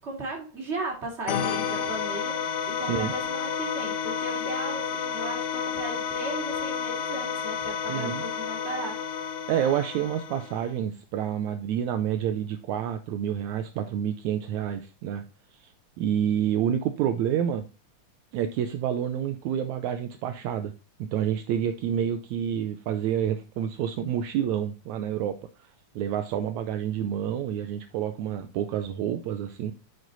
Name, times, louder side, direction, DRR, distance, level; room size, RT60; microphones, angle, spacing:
voice 1, 0.0-9.0, right 2 dB, 20° right, 0 dB, 2.8 m, -36 dB
sound 1, 1.3-10.7, left 7 dB, 70° left, 2.1 m, -31 dB
voice 2, 2.8-3.1 7.9-8.2 9.5-15.2 15.5-15.7 16.0-17.7 18.3-20.7 21.0-25.7 26.0-29.7, right 9 dB, 75° right, 8 dB, 1.9 m, -28 dB
7.9 x 6.2 x 4.0 m, 0.30 s
omnidirectional pair, 3.5 m